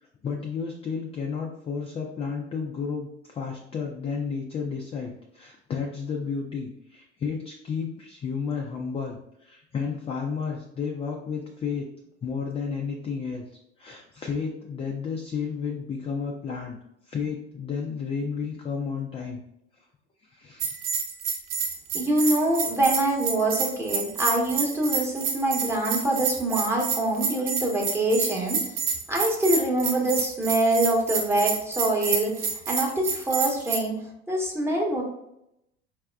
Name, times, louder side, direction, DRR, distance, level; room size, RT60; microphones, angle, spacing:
voice 1, 0.2-11.9 12.2-13.5 13.8-16.8 17.1-19.4 20.3-20.7, left 5 dB, 20° left, 1 dB, 0.4 m, -32 dB
Bell, 20.6-33.8, right 6 dB, 45° right, 0.6 m, -29 dB
voice 2, 21.9-28.6 29.1-34.0 34.3-35.0, right 1 dB, 5° right, -2 dB, 0.9 m, -25 dB
4.8 x 2.2 x 2.2 m, 0.80 s
figure-of-eight pair, 65°, 34 cm